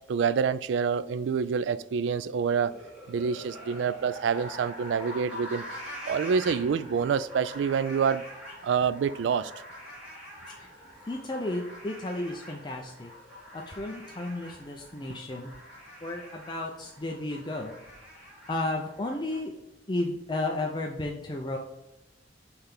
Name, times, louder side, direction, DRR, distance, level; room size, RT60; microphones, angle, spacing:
voice 1, 0.1-2.8 3.1-5.6 6.1-8.2 8.6-9.5, right 6 dB, 80° right, 0.3 m, -27 dB
sound 1, 2.4-19.4, equal, 5° right, 2.0 m, -45 dB
voice 2, 11.1-13.1 13.5-15.5 16.0-17.8 18.5-19.5 19.9-21.6, left 2 dB, 25° left, 0.5 m, -33 dB
5.6 x 3.4 x 5.8 m
head